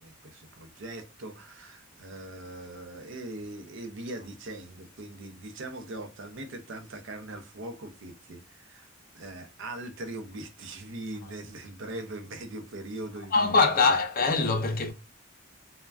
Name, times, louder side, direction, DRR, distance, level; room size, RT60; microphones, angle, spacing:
voice 1, 0.0-8.9 9.1-14.0, right 2 dB, 65° right, 0.6 m, -41 dB
voice 2, 13.3-14.9, left 4 dB, 45° left, 0.5 m, -23 dB
3.3 x 2.2 x 2.3 m
head